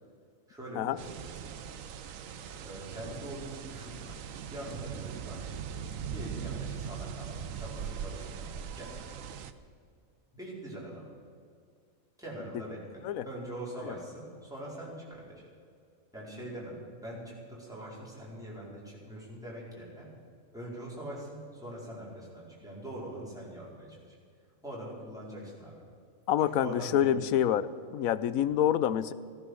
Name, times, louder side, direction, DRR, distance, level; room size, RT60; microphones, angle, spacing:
voice 1, 0.5-1.5 2.6-4.2 4.5-5.5 6.1-9.0 10.3-11.1 12.2-15.4 16.1-16.8 17.0-20.1 20.5-24.1 24.6-25.8 26.4-27.4, right 1 dB, ahead, -6 dB, 4.7 m, -43 dB
sound 1, 1.0-9.5, right 7 dB, 75° right, 1.1 m, -40 dB
voice 2, 26.3-29.1, left 10 dB, 90° left, 15 dB, 1.1 m, -27 dB
15.5 x 14.0 x 6.3 m, 2.2 s
omnidirectional pair, 1.4 m